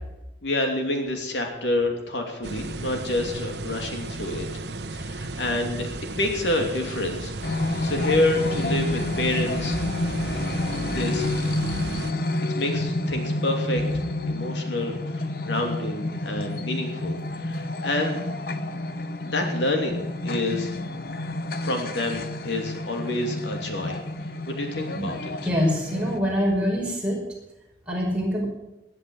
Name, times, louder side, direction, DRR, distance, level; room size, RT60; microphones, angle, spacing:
voice 1, 0.4-4.5 4.9-7.3 7.8-9.8 10.9-11.3 12.6-13.8 14.3-18.2 19.2-20.8 21.6-24.0 24.5-25.3, left 2 dB, 80° left, 3 dB, 2.9 m, -28 dB
sound 1, 2.4-12.1, right 2 dB, 70° right, 1.0 m, -34 dB
sound 2, 7.4-26.2, left 2 dB, 55° left, 0.9 m, -29 dB
voice 2, 25.4-27.2 27.9-28.4, equal, 5° right, -3 dB, 5.2 m, -24 dB
18.0 x 10.5 x 6.4 m, 0.96 s
head